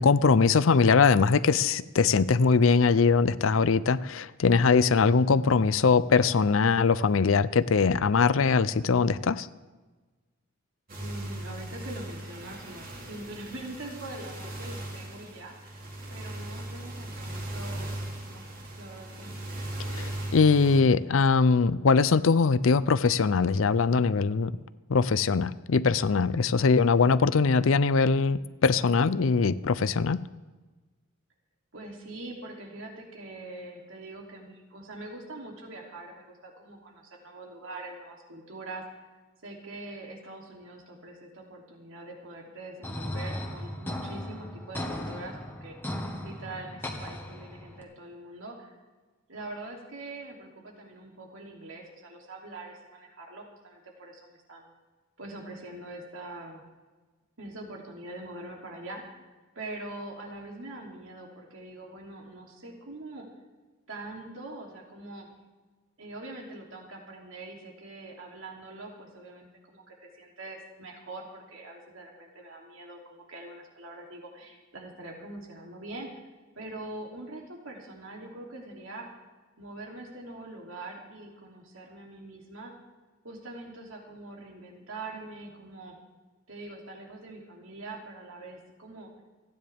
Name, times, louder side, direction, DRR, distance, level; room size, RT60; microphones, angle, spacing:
voice 1, 0.0-9.5 19.9-24.5 24.9-30.2, left 4 dB, 75° left, 16 dB, 0.5 m, -22 dB
sound 1, 10.9-20.8, right 1 dB, 40° right, 3.0 m, -38 dB
voice 2, 11.0-15.8 16.1-18.5 18.8-19.4 31.7-39.1 39.4-45.8 46.2-48.8 49.3-54.7 55.2-56.6 57.4-63.3 63.9-65.3 66.0-76.1 76.5-79.1 79.6-82.7 83.2-86.0 86.5-89.1, right 2 dB, 75° right, -1 dB, 3.1 m, -43 dB
sound 2, 42.8-47.8, left 1 dB, 10° left, 1.4 m, -37 dB
28.0 x 10.0 x 3.5 m, 1.3 s
head